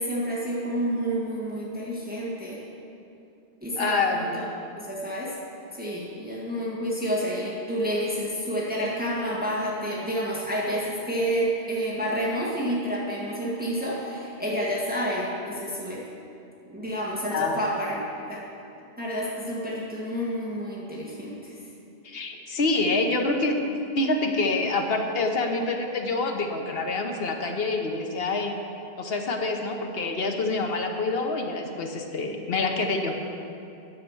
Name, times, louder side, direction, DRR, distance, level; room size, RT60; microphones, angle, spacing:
voice 1, 0.0-2.6 3.6-4.4 4.8-5.3 5.8-16.0 16.7-18.4 19.0-21.6, equal, 10° right, -6 dB, 1.7 m, -29 dB
voice 2, 3.8-4.4 17.3-17.6 22.0-23.6 24.0-28.5 29.0-33.2, left 3 dB, 65° left, 3 dB, 1.2 m, -26 dB
10.5 x 6.6 x 7.1 m, 2.7 s
omnidirectional pair, 1.1 m